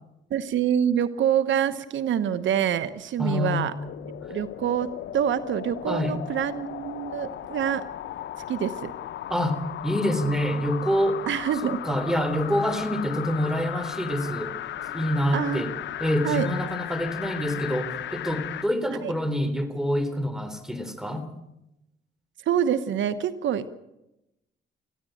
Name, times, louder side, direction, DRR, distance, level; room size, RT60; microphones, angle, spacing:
voice 1, 0.3-3.7 4.3-4.9 5.1-7.8 8.5-8.9 11.3-11.8 15.3-15.7 16.2-16.5 19.0-19.1 22.4-23.7, right 9 dB, 70° right, 13 dB, 1.1 m, -26 dB
voice 2, 3.2-3.7 4.3-4.4 5.9-6.2 9.3-11.2 11.6-14.5 14.9-15.7 16.0-21.3, equal, ahead, 10 dB, 3.5 m, -26 dB
sound 1, 3.7-18.7 19.2-19.3, left 11 dB, 65° left, 0.9 m, -36 dB
21.0 x 15.0 x 9.1 m, 0.91 s
cardioid pair, 90°, 20 cm